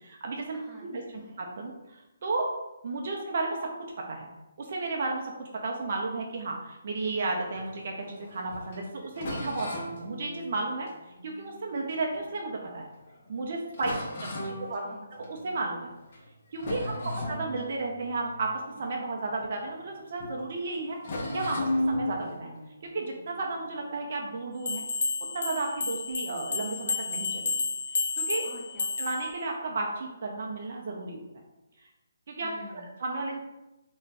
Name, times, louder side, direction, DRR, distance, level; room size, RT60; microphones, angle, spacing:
voice 1, 0.0-1.0 1.4-2.5 2.8-3.7 4.1-4.3 4.6-12.9 13.3-14.0 14.4-14.8 15.1-15.9 16.5-17.0 17.3-21.0 21.3-22.5 22.9-24.8 25.3-27.7 27.9-28.5 29.0-31.2 32.3-32.5 33.0-33.4, right 3 dB, 50° right, 0 dB, 0.4 m, -33 dB
voice 2, 0.5-1.4 13.8-14.1 14.4-15.1 16.8-17.2 28.4-28.9 32.4-32.9, equal, 5° right, -8 dB, 0.7 m, -49 dB
sound 1, 7.4-12.4 13.0-13.1 13.4-13.5 13.7-15.7 16.0-16.3 16.5-19.9 20.2-20.4 21.0-24.0, left 1 dB, 45° left, 0.7 m, -36 dB
sound 2, 24.7-29.3, left 4 dB, 65° left, 0.4 m, -31 dB
2.5 x 2.2 x 3.3 m, 0.99 s
figure-of-eight pair, 145°, 0 cm